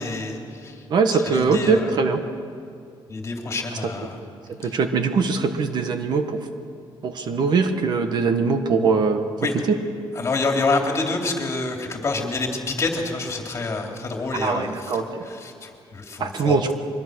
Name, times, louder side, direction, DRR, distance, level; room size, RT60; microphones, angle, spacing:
voice 1, 0.0-0.8 1.1-1.9 3.1-4.2 4.6-4.7 9.4-9.5 10.1-14.9 15.2-16.7, left 3 dB, 30° left, 2 dB, 2.9 m, -27 dB
voice 2, 0.9-2.2 4.6-6.5 7.0-9.2 9.7-9.8 14.4-15.2 16.2-16.7, right 4 dB, 50° right, 7 dB, 1.5 m, -21 dB
24.0 x 21.5 x 6.4 m, 2.4 s
cardioid pair, 140°, 9 cm